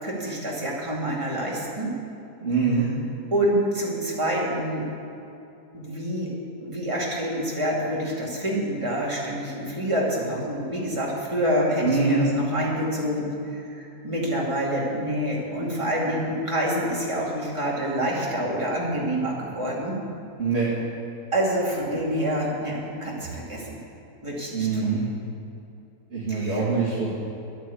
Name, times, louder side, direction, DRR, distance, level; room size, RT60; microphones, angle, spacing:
voice 1, 0.0-1.9 2.7-2.9 3.3-4.8 5.7-6.3 6.6-20.0 21.3-23.8 24.2-24.9 26.3-26.6, equal, 20° right, -5 dB, 2.6 m, -27 dB
voice 2, 2.4-2.9 11.8-12.2 20.4-20.7 24.5-25.0 26.1-27.1, right 4 dB, 40° right, -6 dB, 2.2 m, -23 dB
10.5 x 9.0 x 8.4 m, 2.8 s
omnidirectional pair, 1.7 m